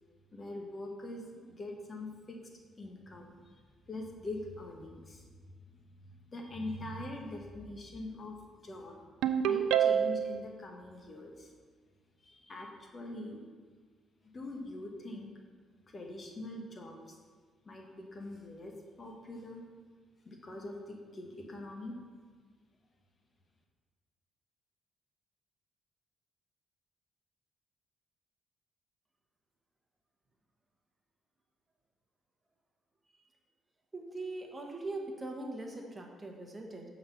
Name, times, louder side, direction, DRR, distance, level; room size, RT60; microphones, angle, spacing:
voice 1, 0.3-2.5 2.8-3.6 3.9-5.3 6.3-8.4 8.6-9.0 9.4-11.5 12.2-13.4 14.3-15.3 15.9-17.2 17.6-19.6 20.2-21.9, left 2 dB, 35° left, 1 dB, 1.2 m, -43 dB
Ringtone, 9.2-10.4, right 9 dB, 90° right, 0.3 m, -27 dB
voice 2, 33.9-36.9, right 2 dB, 20° right, 1 dB, 1.1 m, -41 dB
6.6 x 4.0 x 5.6 m, 1.6 s
cardioid pair, 90°, 0 cm